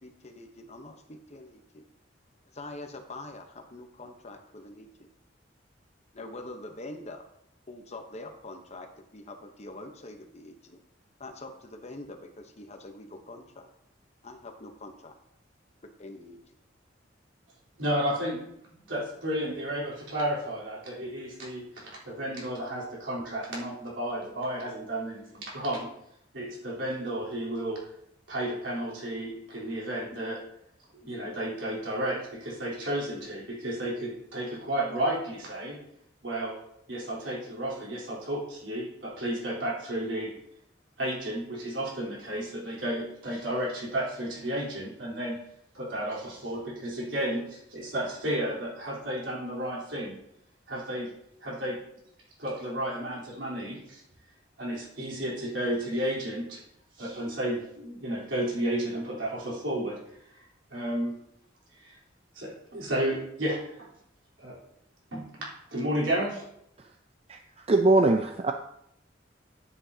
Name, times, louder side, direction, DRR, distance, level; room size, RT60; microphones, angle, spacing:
voice 1, 0.0-1.8 2.5-5.1 6.1-7.2 7.7-10.8 11.2-13.7 14.2-15.1 16.0-16.6, left 2 dB, 35° left, 5 dB, 0.9 m, -44 dB
voice 2, 17.8-25.9 26.3-27.8 28.3-30.4 30.9-35.8 36.2-36.6 36.9-40.3 41.0-45.4 45.7-50.2 50.7-51.1 51.4-51.8 52.4-54.0 54.6-56.6 57.0-60.0 60.3-60.4 60.7-61.2 61.8-62.0 62.3-63.9 64.4-64.6 65.1-66.4, right 1 dB, 80° right, -5 dB, 3.7 m, -32 dB
voice 3, 67.3-68.5, right 2 dB, 35° right, 6 dB, 0.4 m, -22 dB
9.6 x 8.6 x 2.8 m, 0.74 s
head